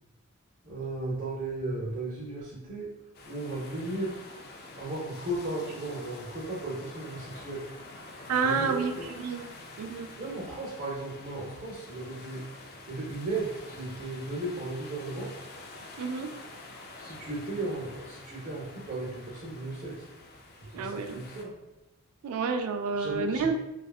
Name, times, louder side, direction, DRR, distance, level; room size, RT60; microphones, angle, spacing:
voice 1, 0.6-2.9 3.3-4.2 4.7-7.6 8.4-9.1 10.2-15.3 17.0-20.0 20.7-21.5 23.0-23.5, right 2 dB, 40° right, -6 dB, 0.7 m, -35 dB
sound 1, 3.1-21.5, left 2 dB, 45° left, 0.3 m, -47 dB
voice 2, 8.3-8.9 9.2-9.4 9.8-10.1 16.0-16.3 20.7-21.2 22.2-23.5, right 5 dB, 75° right, 6 dB, 0.3 m, -29 dB
2.6 x 2.4 x 2.3 m, 0.95 s
head